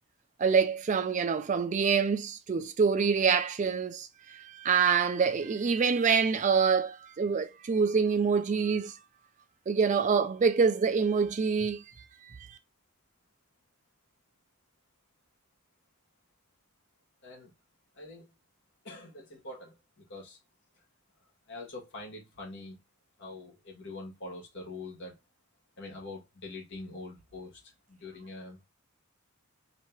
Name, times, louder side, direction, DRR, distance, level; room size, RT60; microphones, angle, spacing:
voice 1, 0.4-9.0 9.7-11.8 12.2-12.6, right 5 dB, 35° right, 0.4 m, -26 dB
voice 2, 17.9-18.3 18.8-20.4 21.5-22.8 23.2-25.1 25.8-28.6, left 2 dB, 55° left, 1.5 m, -44 dB
3.0 x 2.8 x 4.4 m
head